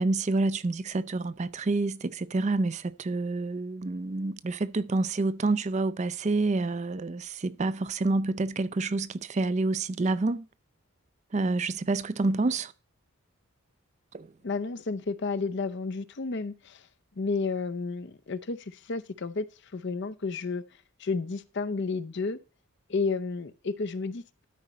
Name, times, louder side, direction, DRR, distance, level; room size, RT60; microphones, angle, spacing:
voice 1, 0.0-10.5 11.3-12.7 14.1-14.3, right 3 dB, 30° right, 0.4 m, -28 dB
voice 2, 14.4-16.9 17.2-20.6 21.0-22.4 22.9-24.5, left 4 dB, 50° left, 0.6 m, -32 dB
12.5 x 5.1 x 4.2 m
head